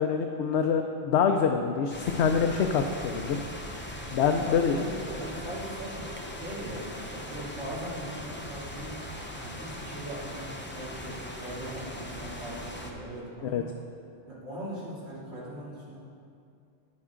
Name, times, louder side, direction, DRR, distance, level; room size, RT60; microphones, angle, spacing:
voice 1, 0.0-3.4 4.1-4.7 13.4-13.6, left 6 dB, 90° left, 4 dB, 0.9 m, -25 dB
sound 1, 1.9-12.9, left 1 dB, 10° left, 0.7 m, -40 dB
voice 2, 4.4-9.0 9.4-13.7 14.3-16.0, right 1 dB, 80° right, -9 dB, 3.2 m, -40 dB
10.5 x 9.6 x 3.7 m, 2.5 s
omnidirectional pair, 1.1 m